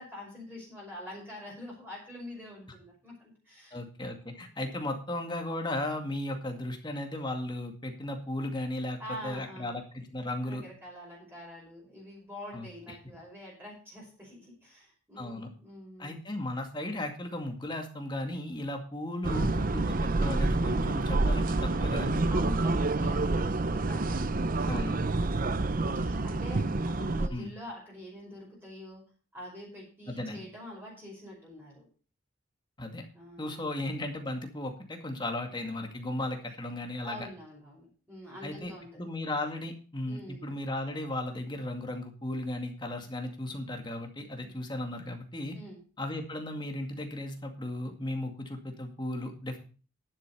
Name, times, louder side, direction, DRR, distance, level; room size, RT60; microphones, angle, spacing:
voice 1, 0.0-3.8 4.2-4.4 9.0-9.8 10.4-16.2 22.3-29.0 29.3-31.9 33.1-33.7 37.0-38.9 40.0-40.4 44.4-44.5 45.5-45.8, left 1 dB, 10° right, -5 dB, 5.5 m, -46 dB
voice 2, 3.7-9.0 9.2-10.6 12.5-13.0 15.2-15.5 16.0-22.2 24.7-25.0 27.0-27.5 30.1-30.4 32.8-33.1 33.4-37.2 38.4-45.6 46.0-49.6, left 1 dB, 25° left, 4 dB, 2.1 m, -36 dB
sound 1, 19.2-27.3, right 2 dB, 45° right, 0.7 m, -28 dB
11.5 x 7.9 x 5.6 m, 0.38 s
head